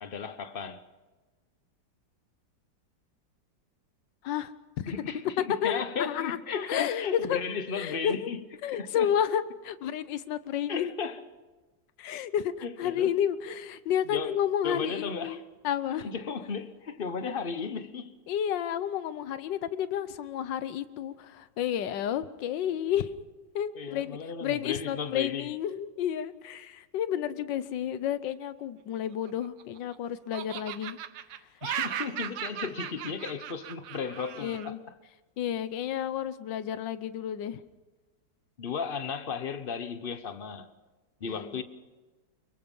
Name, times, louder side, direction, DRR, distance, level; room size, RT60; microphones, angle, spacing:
voice 1, 0.0-0.8 4.9-8.4 8.7-9.1 10.7-11.2 12.6-13.1 14.1-14.3 14.6-15.4 16.0-18.2 23.7-25.5 31.6-34.8 38.6-40.7 41.2-41.6, left 5 dB, 35° left, 1.1 m, -35 dB
voice 2, 4.2-4.9 5.6-7.4 7.7-8.3 8.6-10.9 12.0-12.5 12.8-15.4 15.6-16.1 18.3-23.2 23.5-31.0 34.4-34.8 35.4-37.6 41.3-41.6, left 9 dB, 80° left, 1.5 m, -31 dB
Laughter, 29.1-30.0 30.3-34.7, right 10 dB, 80° right, 1.6 m, -37 dB
24.5 x 22.5 x 5.5 m
omnidirectional pair, 1.9 m